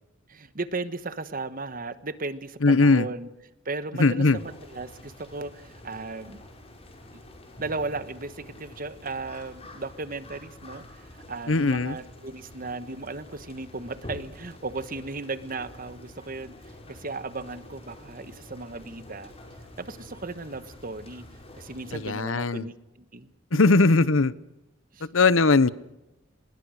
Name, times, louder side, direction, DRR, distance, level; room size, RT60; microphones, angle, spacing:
voice 1, 0.3-3.3 3.6-6.4 7.6-19.3 19.8-21.2 21.6-23.6 24.9-25.1, right 3 dB, 45° right, 13 dB, 1.3 m, -36 dB
voice 2, 2.6-3.1 4.0-4.4 11.5-12.0 21.9-22.7 23.5-24.3 25.0-25.7, left 3 dB, 90° left, 18 dB, 0.9 m, -20 dB
sound 1, 4.2-22.1, left 1 dB, 30° left, 5.4 m, -47 dB
26.0 x 21.0 x 6.5 m, 0.93 s
head